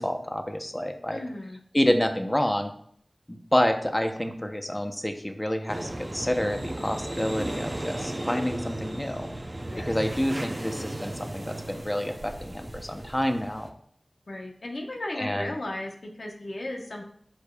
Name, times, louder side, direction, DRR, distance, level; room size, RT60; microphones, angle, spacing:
voice 1, 0.0-1.2 1.7-2.7 3.3-9.3 9.8-13.7 15.1-15.5, left 1 dB, 20° left, 6 dB, 0.9 m, -28 dB
voice 2, 1.1-1.6 9.6-9.9 14.3-17.0, left 1 dB, 75° left, 1 dB, 1.2 m, -35 dB
sound 1, 5.7-13.7, right 1 dB, 35° right, 0.7 m, -35 dB
11.5 x 4.7 x 2.4 m, 0.64 s
wide cardioid pair, 55°, 0 cm